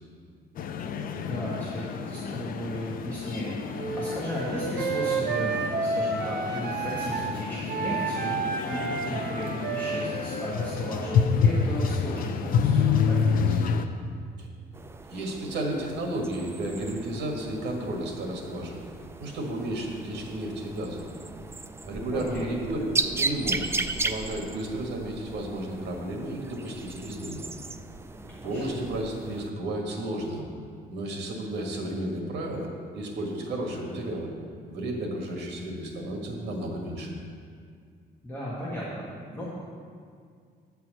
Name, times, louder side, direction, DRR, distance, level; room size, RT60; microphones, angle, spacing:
sound 1, 0.6-13.9, left 6 dB, 55° left, 0.5 m, -28 dB
voice 1, 1.0-3.5 3.9-13.6 22.1-22.5 28.1-28.8 38.2-39.5, equal, 10° left, -7 dB, 1.6 m, -36 dB
Wind instrument woodwind instrument, 3.8-7.3 7.7-11.4, right 4 dB, 65° right, 1.0 m, -31 dB
sound 2, 14.7-29.5, right 3 dB, 15° right, 0.3 m, -36 dB
voice 2, 15.1-18.8 19.2-21.0 21.8-23.8 24.0-27.4 28.4-30.4 30.9-34.3 34.7-37.1, right 1 dB, 80° right, 1 dB, 1.9 m, -32 dB
9.7 x 4.7 x 7.5 m, 2.2 s
cardioid pair, 140°, 18 cm